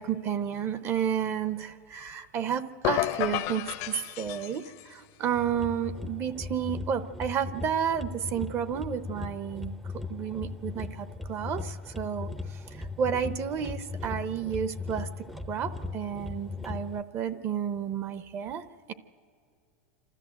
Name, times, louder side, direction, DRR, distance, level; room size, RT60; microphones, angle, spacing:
voice 1, 0.0-9.7 10.1-15.1 15.5-18.9, right 8 dB, 35° right, 14 dB, 0.8 m, -31 dB
sound 1, 2.8-4.9, left 14 dB, 55° left, 0.8 m, -31 dB
sound 2, 5.3-17.0, left 3 dB, ahead, 0.6 m, -38 dB
27.5 x 13.5 x 7.7 m, 2.4 s
supercardioid pair, 130°, 7 cm